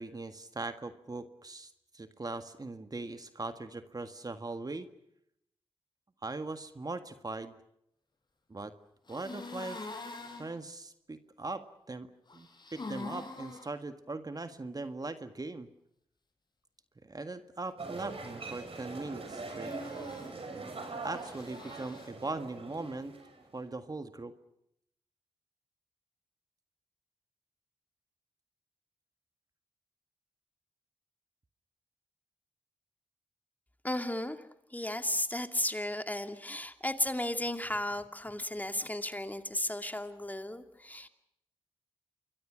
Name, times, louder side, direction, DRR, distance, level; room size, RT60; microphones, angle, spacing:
voice 1, 0.0-4.9 6.2-7.5 8.5-8.7 9.1-9.8 10.4-15.7 17.1-19.7 20.5-20.8 21.0-23.1 23.5-24.4, right 3 dB, 35° right, 9 dB, 1.8 m, -40 dB
sound 1, 9.1-10.5 12.3-13.7 19.5-20.3 21.1-22.1, left 3 dB, 40° left, 6.4 m, -44 dB
sound 2, 17.8-23.6, right 3 dB, 55° right, 6.4 m, -42 dB
voice 2, 33.8-34.4 34.7-41.1, left 1 dB, 15° left, 7 dB, 2.4 m, -34 dB
27.5 x 22.5 x 6.3 m, 0.77 s
supercardioid pair, 40°, 11 cm